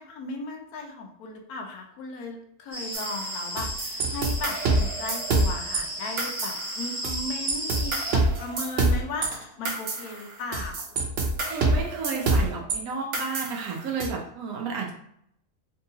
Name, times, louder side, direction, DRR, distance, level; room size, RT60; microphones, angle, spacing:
voice 1, 0.0-10.9, left 3 dB, 90° left, 3 dB, 1.2 m, -36 dB
sound 1, 2.7-8.1, right 1 dB, 20° right, 1.2 m, -34 dB
sound 2, 2.9-5.8 6.2-7.2 7.5-12.8 13.1-14.1, right 2 dB, 60° right, 0.7 m, -26 dB
voice 2, 11.5-14.9, right 5 dB, 80° right, 0 dB, 1.2 m, -32 dB
3.7 x 2.7 x 2.7 m, 0.71 s
omnidirectional pair, 1.5 m